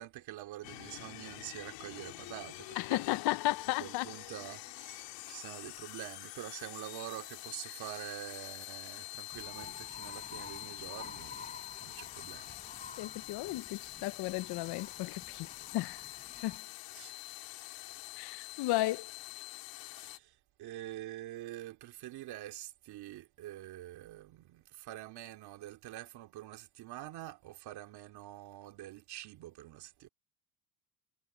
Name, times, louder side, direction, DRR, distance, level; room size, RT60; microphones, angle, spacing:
voice 1, 0.0-3.0 3.8-12.6 16.9-17.1 17.5-17.9 19.9-30.1, right 14 dB, 60° right, 2.6 m, -46 dB
sound 1, 0.6-20.2, left 19 dB, 85° left, 3.7 m, -46 dB
voice 2, 2.8-4.1 13.0-16.0 16.4-16.6 18.2-19.1, left 18 dB, 60° left, 0.6 m, -34 dB
sound 2, 9.3-16.6, left 4 dB, 15° left, 4.5 m, -51 dB
cardioid pair, 145°, 43 cm